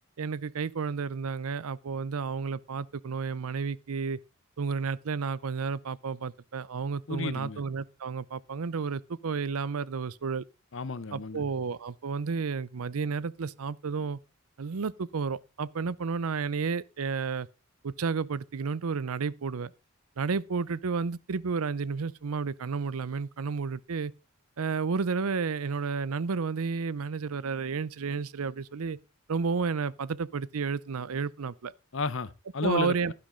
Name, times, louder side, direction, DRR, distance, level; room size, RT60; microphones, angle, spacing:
voice 1, 0.2-4.2 4.6-10.4 11.1-14.2 14.6-17.5 17.8-19.7 20.2-24.1 24.6-29.0 29.3-31.7 32.6-33.1, right 5 dB, 80° right, 0.6 m, -31 dB
voice 2, 7.1-7.6 10.7-11.4 31.9-32.9, left 4 dB, 60° left, 0.8 m, -32 dB
11.5 x 11.0 x 3.7 m
head